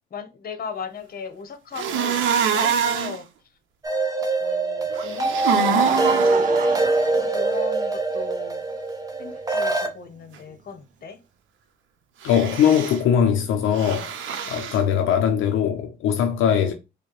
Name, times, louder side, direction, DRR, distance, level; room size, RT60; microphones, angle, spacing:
voice 1, 0.1-3.3 4.4-8.6 9.2-11.2, left 5 dB, 50° left, 0.9 m, -37 dB
sound 1, 1.7-3.2 5.0-6.4 12.2-13.0 13.7-14.8, right 7 dB, 75° right, 0.6 m, -25 dB
sound 2, 3.8-9.9, right 2 dB, 15° right, 0.8 m, -23 dB
Laughter, 4.9-8.1 8.9-9.0 10.5-10.6, right 6 dB, 40° right, 0.4 m, -31 dB
voice 2, 12.2-14.2 14.5-16.7, left 8 dB, 80° left, 0.5 m, -21 dB
4.5 x 2.1 x 3.0 m
cardioid pair, 90°, 20 cm